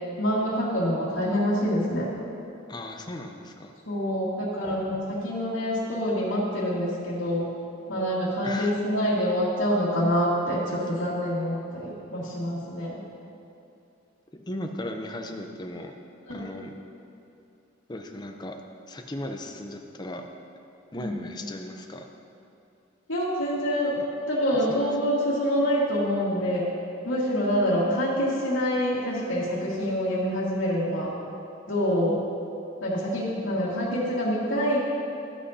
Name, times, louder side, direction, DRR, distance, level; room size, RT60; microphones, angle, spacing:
voice 1, 0.2-2.1 3.9-7.5 7.9-13.0 16.3-16.4 20.9-21.2 23.1-24.0 24.3-26.7 27.0-31.1 31.7-32.2 32.8-34.8, equal, 85° left, -10 dB, 1.8 m, -26 dB
voice 2, 2.7-3.7 8.4-8.8 14.3-15.9 16.3-16.8 17.9-18.6 18.9-20.3 20.9-22.1 24.7-24.9, left 1 dB, 20° left, 4 dB, 0.6 m, -36 dB
13.5 x 8.4 x 2.8 m, 2.7 s
head